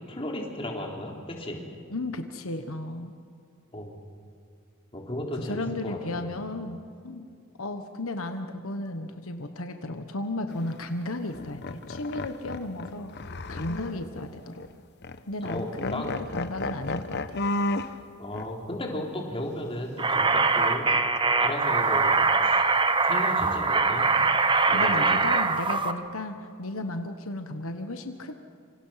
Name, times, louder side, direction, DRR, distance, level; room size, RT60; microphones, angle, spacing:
voice 1, 0.0-1.6 3.7-3.9 4.9-6.3 15.4-16.1 18.2-20.9 21.4-22.6 23.0-24.1 24.7-25.3, left 1 dB, 25° left, 0 dB, 3.7 m, -35 dB
voice 2, 1.9-3.1 5.3-7.3 7.6-13.1 13.5-14.6 15.3-17.4 24.7-28.3, left 2 dB, 80° left, 7 dB, 1.4 m, -34 dB
sound 1, 10.5-10.8 11.3-14.3 14.6-14.7 15.0-15.2 15.5-17.9 18.3-18.5 21.6-22.6, left 2 dB, 55° left, 1.1 m, -34 dB
sound 2, 20.0-25.9, right 4 dB, 25° right, 1.1 m, -23 dB
27.0 x 26.0 x 5.9 m, 2.4 s
head